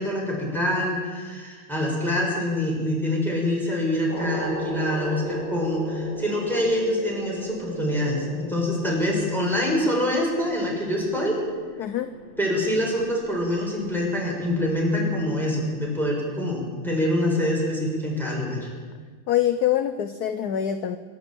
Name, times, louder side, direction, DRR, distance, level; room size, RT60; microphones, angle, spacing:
voice 1, 0.0-11.4 12.4-18.7, left 1 dB, ahead, -3 dB, 6.7 m, -25 dB
sound 1, 4.1-15.9, left 1 dB, 75° left, 7.7 m, -37 dB
voice 2, 11.8-12.1 19.3-21.0, left 11 dB, 60° left, 10 dB, 1.2 m, -24 dB
25.5 x 12.0 x 9.0 m, 1.5 s
omnidirectional pair, 2.1 m